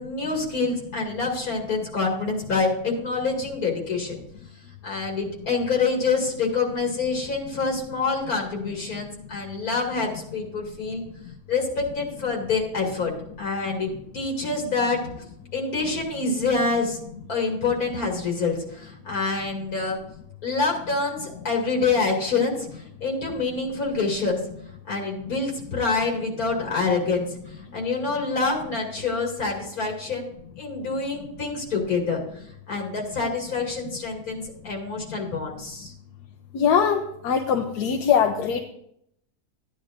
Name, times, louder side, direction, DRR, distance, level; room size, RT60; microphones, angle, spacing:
voice 1, 0.0-4.2 4.8-11.0 11.5-15.0 15.5-17.0 17.3-20.0 20.4-24.4 24.9-30.3 30.6-35.9, left 4 dB, 65° left, -1 dB, 2.8 m, -26 dB
voice 2, 36.5-38.6, left 7 dB, 85° left, 3 dB, 1.3 m, -22 dB
15.0 x 10.0 x 2.5 m, 0.72 s
omnidirectional pair, 1.7 m